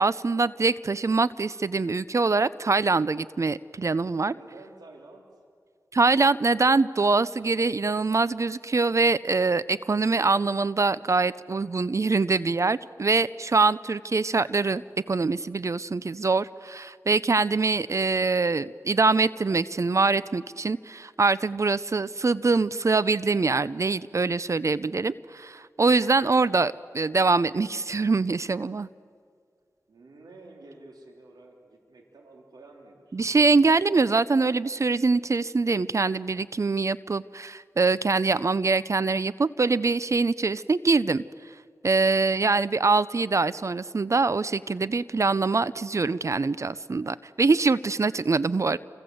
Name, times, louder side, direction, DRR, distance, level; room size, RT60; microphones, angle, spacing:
voice 1, 0.0-4.3 5.9-14.8 15.1-28.9 33.1-41.2 41.8-48.8, right 3 dB, 50° right, 17 dB, 0.6 m, -24 dB
voice 2, 4.3-5.4 29.9-33.2, right 2 dB, 90° right, 1 dB, 3.4 m, -50 dB
29.5 x 25.5 x 7.9 m, 2.1 s
cardioid pair, 45°, 7 cm